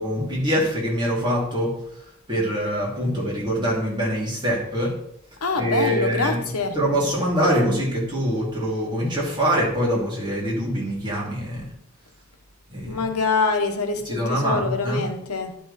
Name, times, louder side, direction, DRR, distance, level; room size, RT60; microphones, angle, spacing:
voice 1, 0.0-1.7 2.3-4.9 5.5-6.4 6.7-11.7 12.7-13.0 14.0-15.0, equal, 20° right, 2.8 m, -24 dB
voice 2, 5.4-6.8 12.9-15.6, left 4 dB, 90° left, 1.1 m, -25 dB
10.5 x 5.3 x 4.1 m
head